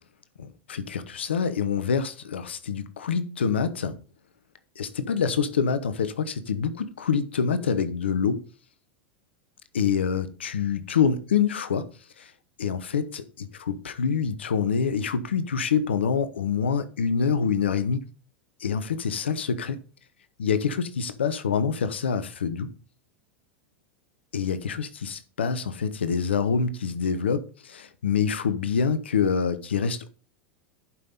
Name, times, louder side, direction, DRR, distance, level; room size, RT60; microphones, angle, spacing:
voice 1, 0.4-4.0 4.8-8.4 9.7-11.9 12.2-12.3 12.6-18.1 18.6-19.8 20.4-22.7 24.3-30.1, left 6 dB, 80° left, 0.9 m, -26 dB
11.0 x 5.5 x 3.9 m
hypercardioid pair, 90°, 6 cm